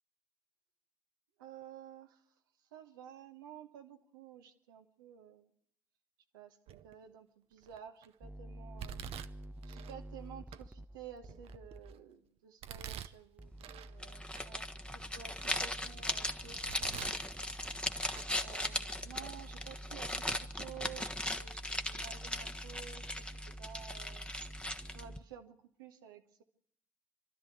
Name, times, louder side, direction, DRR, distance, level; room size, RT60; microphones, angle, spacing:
voice 1, 1.4-2.2 2.7-5.5 6.3-9.0 9.7-14.7 14.9-17.5 18.4-20.2 20.5-23.2 23.6-24.3 24.9-26.4, right 9 dB, 80° right, 4 dB, 1.3 m, -52 dB
Domestic sounds home sounds, 6.7-7.1 7.6-8.1 8.8-10.0 10.5-10.6 11.2-12.0 12.6-13.9 14.3-14.4 15.0-16.0 16.4-17.2 17.6-18.3 18.6-18.7 19.6-19.7 20.3-20.4 20.8-20.9, right 10 dB, 60° right, 0.8 m, -48 dB
sound 1, 8.2-11.9 13.4-25.2, right 1 dB, 15° right, 0.8 m, -49 dB
sound 2, 14.0-25.2, left 1 dB, 10° left, 1.4 m, -38 dB
26.5 x 12.5 x 9.3 m, 0.67 s
figure-of-eight pair, 45°, 11 cm